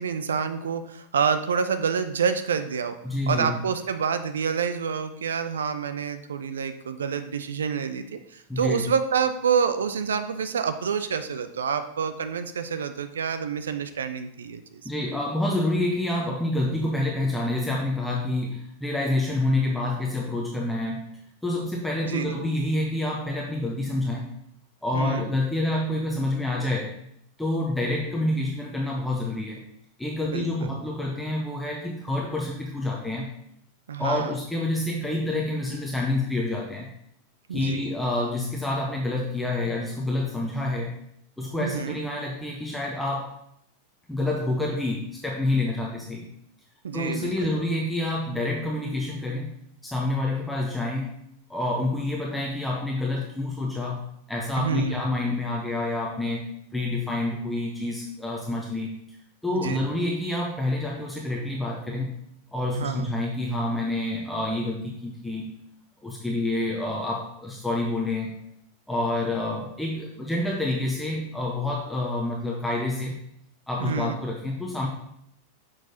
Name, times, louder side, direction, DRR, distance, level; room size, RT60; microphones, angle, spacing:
voice 1, 0.0-3.0 3.3-14.6 22.1-22.4 24.9-25.2 30.3-30.8 33.9-34.3 37.5-37.9 41.6-42.0 46.8-47.6 54.6-55.0 59.5-59.9 62.7-63.1 73.8-74.2, right 6 dB, 65° right, 10 dB, 0.4 m, -28 dB
voice 2, 3.0-3.6 8.5-8.8 14.8-24.3 24.8-26.9 27.4-29.6 30.0-33.3 34.0-36.9 37.5-40.9 41.4-43.3 44.1-46.3 46.9-49.5 49.8-51.2 51.5-56.5 56.7-59.0 59.4-62.1 62.5-65.5 66.0-68.4 68.9-73.1 73.7-74.9, left 2 dB, 5° left, -1 dB, 0.7 m, -28 dB
6.2 x 6.0 x 2.7 m, 0.72 s
figure-of-eight pair, 90°, 0 cm